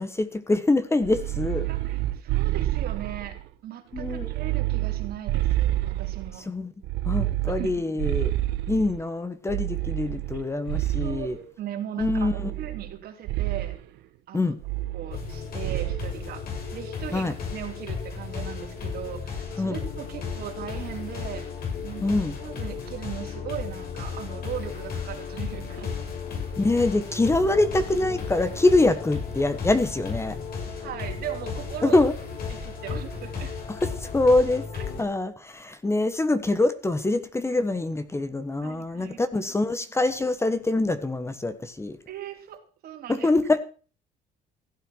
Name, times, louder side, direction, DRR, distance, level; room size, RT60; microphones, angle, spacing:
voice 1, 0.0-1.7 3.9-4.3 6.5-6.7 7.0-8.3 8.7-11.4 12.0-12.5 14.3-14.6 17.1-17.3 19.6-19.8 22.0-22.3 26.6-30.3 31.8-32.1 33.8-34.6 35.0-42.0 43.1-43.6, left 2 dB, 15° left, 12 dB, 1.3 m, -24 dB
sound 1, 1.0-3.5 3.9-6.4 6.8-9.0 9.5-11.4 12.0-13.0 13.3-13.8 14.6-15.3 15.6-16.1, right 16 dB, 90° right, 1.2 m, -28 dB
voice 2, 1.7-3.4 3.6-6.5 7.5-7.8 10.3-10.4 11.0-13.8 14.3-14.5 14.9-26.0 30.8-32.0 32.5-33.5 34.7-34.9 38.6-39.2 42.1-43.3, right 10 dB, 65° right, 3 dB, 3.6 m, -38 dB
sound 2, 15.1-35.0, left 5 dB, 65° left, 6.2 m, -34 dB
sound 3, 27.3-33.2, left 5 dB, 40° left, 2.9 m, -45 dB
16.0 x 9.3 x 6.3 m, 0.38 s
cardioid pair, 110°, 17 cm